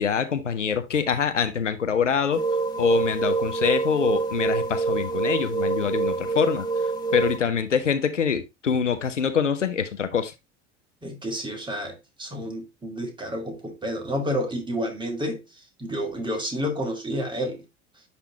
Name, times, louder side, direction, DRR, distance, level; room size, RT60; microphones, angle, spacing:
voice 1, 0.0-2.4 2.8-6.7 7.1-10.3, left 7 dB, 85° left, 0.7 m, -25 dB
sound 1, 2.3-7.4, right 4 dB, 10° left, 1.8 m, -26 dB
voice 2, 11.0-15.4 15.8-17.6, equal, 15° right, 2.1 m, -30 dB
10.5 x 3.5 x 2.7 m
figure-of-eight pair, 70°, 36 cm